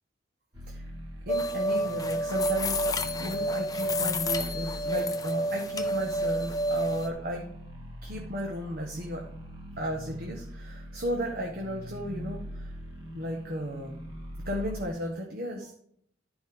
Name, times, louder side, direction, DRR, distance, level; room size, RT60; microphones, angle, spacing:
sound 1, 0.5-14.9, equal, 25° right, 1.7 m, -42 dB
sound 2, 1.3-7.1, equal, 20° left, 0.8 m, -29 dB
voice 1, 1.3-2.8 3.2-7.5 8.0-9.2 9.8-12.7 13.1-14.0 14.4-15.7, equal, 55° right, 0 dB, 1.3 m, -34 dB
11.5 x 5.2 x 5.1 m, 0.66 s
head